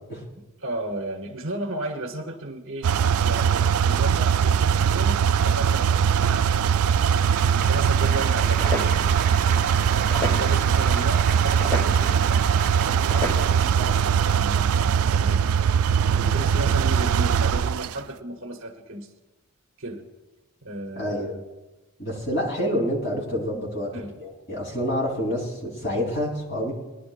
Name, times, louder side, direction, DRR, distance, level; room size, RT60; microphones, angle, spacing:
voice 1, 0.3-2.9 3.2-6.8 7.1-8.9 9.9-12.4 12.7-15.4 16.1-19.1 19.8-20.0 20.6-21.4 23.9-24.2, right 1 dB, 60° right, 1 dB, 1.1 m, -34 dB
sound 1, 2.8-17.9, right 7 dB, 80° right, 0.3 m, -21 dB
Applause, 6.6-14.0, right 7 dB, 35° right, 0.9 m, -36 dB
sound 2, 8.0-14.0, equal, 10° left, 1.1 m, -34 dB
voice 2, 20.9-21.4 22.0-23.9 24.2-26.7, equal, 50° left, -2 dB, 4.0 m, -27 dB
21.5 x 11.0 x 2.5 m, 1.1 s
head